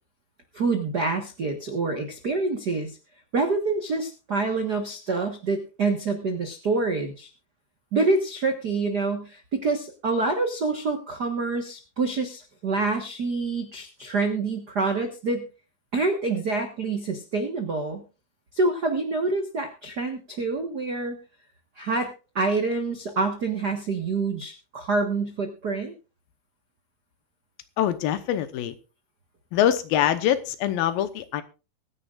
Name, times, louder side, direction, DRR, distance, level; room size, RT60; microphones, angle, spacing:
voice 1, 0.5-3.0 3.3-7.3 7.9-15.4 15.9-18.0 18.5-21.2 21.8-25.9, right 3 dB, 80° right, 5 dB, 0.9 m, -26 dB
voice 2, 27.8-28.7 29.5-31.4, left 11 dB, 80° left, 11 dB, 2.7 m, -24 dB
23.5 x 10.0 x 2.5 m, 0.31 s
omnidirectional pair, 4.3 m